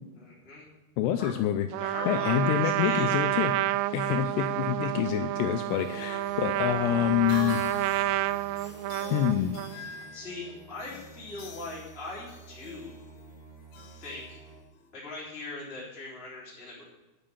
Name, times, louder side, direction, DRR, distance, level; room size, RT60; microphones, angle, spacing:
voice 1, 0.2-0.7 1.2-1.3 1.8-3.5 10.1-13.0 13.9-14.4 14.9-16.8, left 2 dB, 15° left, -6 dB, 3.0 m, -40 dB
voice 2, 1.0-3.5 3.9-7.6 9.1-9.5, left 11 dB, 85° left, 8 dB, 2.4 m, -27 dB
Trumpet, 1.7-9.8, right 15 dB, 85° right, 2.4 m, -29 dB
sound 1, 5.4-14.9, left 5 dB, 65° left, 3.1 m, -47 dB
sound 2, 6.0-14.6, right 3 dB, 55° right, 3.0 m, -52 dB
10.0 x 9.0 x 7.0 m, 1.0 s
omnidirectional pair, 5.5 m